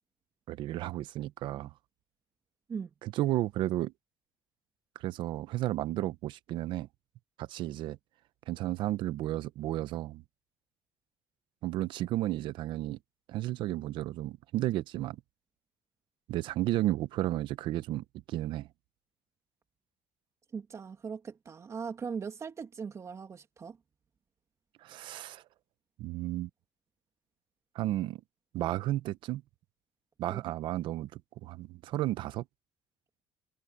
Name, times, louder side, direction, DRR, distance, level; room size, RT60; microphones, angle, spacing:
voice 1, 0.5-1.7 3.0-3.9 4.9-6.9 7.4-8.0 8.5-10.2 11.6-13.0 13.3-15.2 16.3-18.7 24.8-25.4 26.0-26.5 27.7-28.2 28.5-29.4 30.2-32.4, right 15 dB, 75° right, 0.9 m, -33 dB
voice 2, 20.5-23.8 30.3-30.4, right 6 dB, 35° right, 2.6 m, -39 dB
cardioid pair, 105°, 8 cm